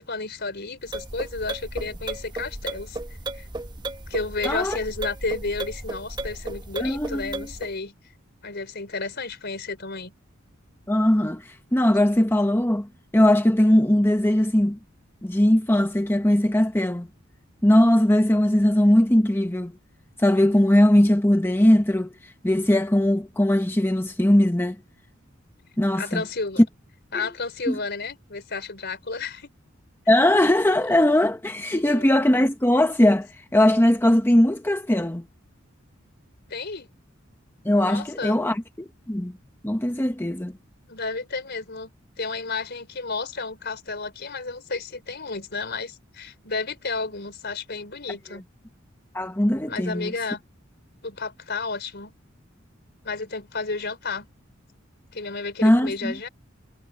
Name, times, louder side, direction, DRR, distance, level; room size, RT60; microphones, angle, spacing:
voice 1, 0.0-3.0 3.4-3.5 4.1-7.9 8.4-10.1 26.0-26.6 27.1-29.5 31.7-32.1 36.5-36.9 37.8-38.4 40.9-41.9 42.2-48.4 49.7-50.4 51.0-52.1 53.0-54.3 55.1-56.3, left 4 dB, 55° left, 4.4 m, -32 dB
sound 1, 0.8-7.7, right 2 dB, 20° right, 1.2 m, -34 dB
voice 2, 4.4-4.8 6.8-7.5 10.9-14.8 15.2-17.1 17.6-19.8 20.2-22.1 22.4-24.8 25.8-26.2 27.1-27.3 27.7-27.8 30.1-35.2 37.6-39.3 39.6-40.5 48.3-48.4 49.1-50.1 55.6-56.1, left 1 dB, 10° left, 1.0 m, -20 dB
head